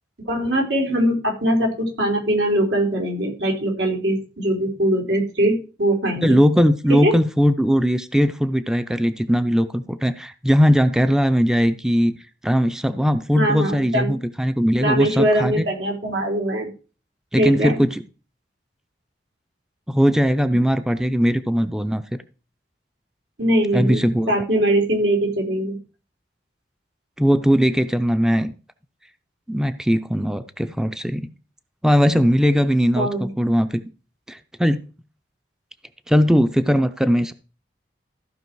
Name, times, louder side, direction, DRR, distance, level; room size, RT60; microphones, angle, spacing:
voice 1, 0.3-6.4 6.9-7.1 13.3-14.2 14.8-16.7 17.4-17.8 23.4-25.8 33.0-33.3, right 1 dB, 85° right, -1 dB, 4.1 m, -21 dB
voice 2, 6.2-12.1 12.4-15.6 17.3-18.0 19.9-22.0 23.6-24.3 27.2-28.5 29.5-31.3 31.8-33.1 33.4-33.8 34.3-34.9 36.1-37.3, equal, 5° right, 10 dB, 0.4 m, -19 dB
14.5 x 5.4 x 4.6 m, 0.35 s
head